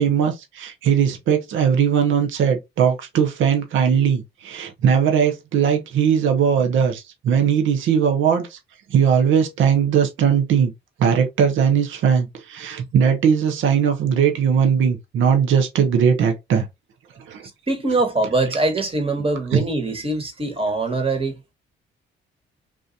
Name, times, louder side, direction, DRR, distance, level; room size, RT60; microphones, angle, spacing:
voice 1, 0.0-8.6 8.9-10.7 11.0-16.7 17.3-17.4 18.4-18.5 19.5-19.6, right 7 dB, 75° right, 0.9 m, -19 dB
voice 2, 17.7-21.5, right 2 dB, 30° right, 1.4 m, -23 dB
3.9 x 2.5 x 2.7 m
cardioid pair, 90°, 20 cm